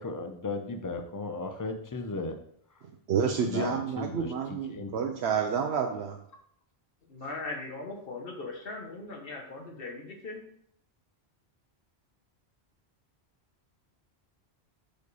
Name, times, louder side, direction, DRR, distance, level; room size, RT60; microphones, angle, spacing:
voice 1, 0.0-2.3 3.4-4.3 4.7-5.0, left 3 dB, 25° left, 6 dB, 0.6 m, -35 dB
voice 2, 3.1-6.2, right 6 dB, 80° right, 3 dB, 0.9 m, -29 dB
voice 3, 7.1-10.4, left 3 dB, 60° left, 2 dB, 1.3 m, -39 dB
6.5 x 5.1 x 4.0 m, 0.67 s
omnidirectional pair, 1.1 m